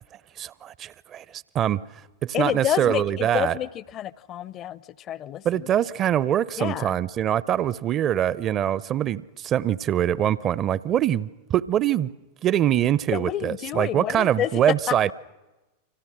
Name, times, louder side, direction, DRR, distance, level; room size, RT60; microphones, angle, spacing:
voice 1, 0.4-1.2 1.5-1.8 2.2-3.6 5.4-12.1 12.4-15.1, right 11 dB, 30° right, 0.7 m, -23 dB
voice 2, 2.3-4.8 5.1-5.7 6.6-7.0 13.1-15.1, left 11 dB, 35° left, 0.7 m, -29 dB
28.5 x 25.5 x 6.2 m
figure-of-eight pair, 90°, 0 cm